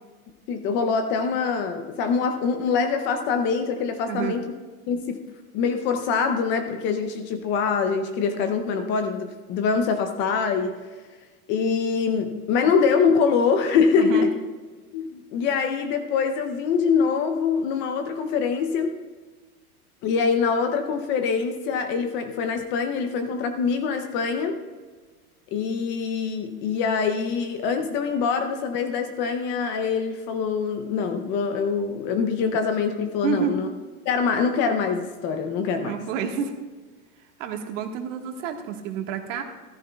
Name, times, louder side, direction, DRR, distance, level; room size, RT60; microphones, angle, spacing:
voice 1, 0.5-4.4 4.9-5.2 5.5-10.8 11.5-14.3 14.9-18.9 20.0-24.6 25.5-33.7 34.1-35.9, left 5 dB, 25° left, 6 dB, 0.5 m, -24 dB
voice 2, 14.0-14.3 33.2-33.6 35.8-36.5 37.4-39.4, right 7 dB, 55° right, 5 dB, 1.5 m, -29 dB
14.5 x 14.0 x 2.3 m, 1.4 s
supercardioid pair, 145°, 45 cm